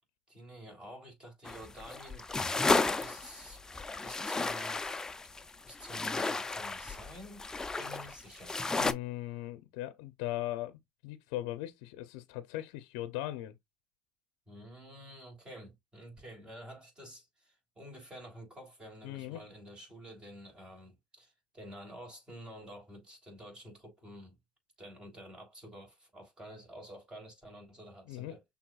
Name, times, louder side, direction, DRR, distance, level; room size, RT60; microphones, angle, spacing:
voice 1, 0.3-3.6 4.0-4.8 5.6-7.4 7.8-8.5 14.5-24.3 24.8-28.4, equal, 20° right, 3.3 m, -50 dB
sound 1, 1.5-8.9, left 3 dB, 15° left, 0.5 m, -33 dB
voice 2, 8.8-13.5 19.0-19.4 28.1-28.3, left 15 dB, 85° left, 0.6 m, -39 dB
6.1 x 3.4 x 2.3 m
supercardioid pair, 100°, 4 cm